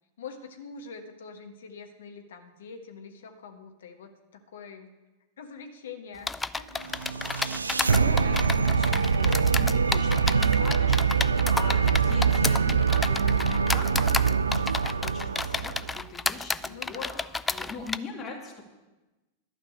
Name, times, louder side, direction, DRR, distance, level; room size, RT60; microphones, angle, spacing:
voice 1, 0.2-4.9 5.4-6.3 6.6-6.9 10.4-11.0 16.7-17.3, left 5 dB, 65° left, 4 dB, 1.3 m, -44 dB
sound 1, 6.3-18.0, left 3 dB, 10° left, 0.3 m, -31 dB
sound 2, 6.9-16.0, right 6 dB, 75° right, 0.3 m, -24 dB
voice 2, 7.6-18.7, left 4 dB, 25° left, -1 dB, 2.6 m, -42 dB
12.0 x 5.9 x 8.4 m, 1.1 s
figure-of-eight pair, 90°, 0 cm